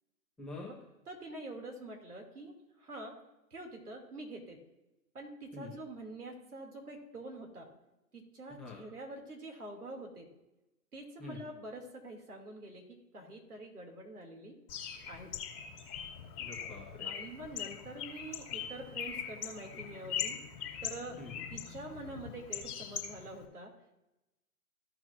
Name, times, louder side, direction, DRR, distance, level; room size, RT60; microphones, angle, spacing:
voice 1, 0.4-0.7 5.5-5.7 8.5-8.8 11.2-11.4 16.4-17.1 21.2-21.4, left 3 dB, ahead, -3 dB, 1.0 m, -45 dB
voice 2, 1.1-3.2 3.5-4.6 5.1-7.7 8.1-10.3 10.9-12.8 13.1-14.6 15.1-15.3 17.0-20.4 20.8-21.2 21.5-23.7, right 2 dB, 70° right, 1 dB, 3.0 m, -46 dB
Bird, 14.7-23.4, left 8 dB, 20° left, 1.9 m, -41 dB
15.5 x 5.9 x 2.7 m, 0.95 s
figure-of-eight pair, 130°, 47 cm